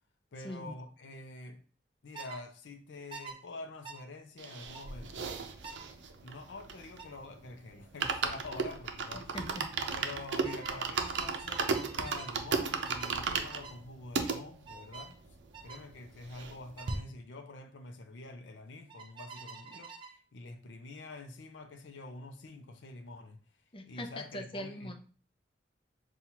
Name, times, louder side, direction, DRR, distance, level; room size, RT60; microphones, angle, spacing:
voice 1, 0.3-1.6 2.0-5.4 6.2-9.4 9.9-15.2 15.6-23.4 23.9-24.9, left 2 dB, 90° left, 0.5 m, -47 dB
sound 1, 2.1-2.4 3.1-3.4 3.8-4.0 4.7-4.9 5.6-5.9 7.0-7.2 8.6-8.9 9.2-9.5 10.4-12.4 12.8-13.2 13.5-13.8 14.7-15.1 15.5-15.8 16.8-17.0 18.9-20.2, right 5 dB, 30° right, 0.6 m, -47 dB
sound 2, 4.4-7.2 7.5-7.6 7.8-14.4 15.0-15.1 15.2-15.3 15.6-16.6 16.9-17.0, right 5 dB, 80° right, 0.5 m, -35 dB
voice 2, 9.1-9.6 23.7-24.9, left 1 dB, 30° left, 0.6 m, -41 dB
5.5 x 2.3 x 2.9 m
head